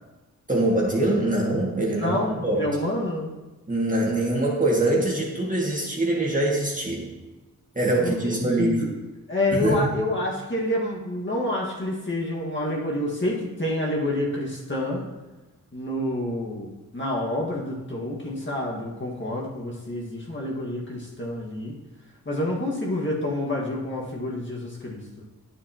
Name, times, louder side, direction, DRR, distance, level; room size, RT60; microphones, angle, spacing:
voice 1, 0.5-2.7 3.7-7.1 7.8-8.8 9.5-9.9, right 1 dB, 25° right, -3 dB, 2.2 m, -23 dB
voice 2, 2.0-3.3 8.0-8.9 9.3-15.0 15.7-21.8 22.3-25.2, left 1 dB, 35° left, -4 dB, 1.8 m, -28 dB
9.7 x 7.0 x 3.0 m, 1.1 s
cardioid pair, 60°, 34 cm